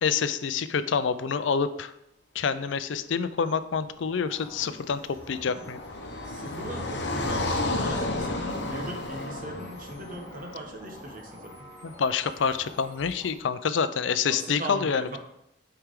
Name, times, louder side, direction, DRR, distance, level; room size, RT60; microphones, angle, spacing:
voice 1, 0.0-1.9 2.3-5.0 5.3-5.8 11.8-15.2, left 6 dB, 85° left, 13 dB, 0.5 m, -27 dB
Car passing by, 4.3-11.5, left 2 dB, 65° left, 0.9 m, -33 dB
sound 1, 4.3-13.4, left 1 dB, 15° left, 2.1 m, -49 dB
voice 2, 6.2-11.5 14.3-15.2, right 2 dB, 50° right, 2 dB, 1.2 m, -39 dB
8.8 x 4.7 x 3.7 m, 0.80 s
head